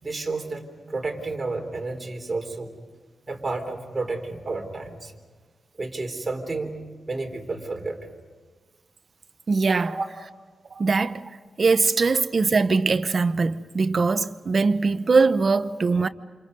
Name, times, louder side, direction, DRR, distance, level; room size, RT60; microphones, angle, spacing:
voice 1, 0.0-2.7 3.3-5.1 5.8-6.8 7.1-8.0 9.8-10.0, right 3 dB, 25° right, 3.9 m, -31 dB
voice 2, 9.5-10.0 10.7-11.2 11.6-16.1, right 4 dB, 40° right, 0.9 m, -21 dB
29.0 x 28.5 x 5.4 m
wide cardioid pair, 130°, 0 cm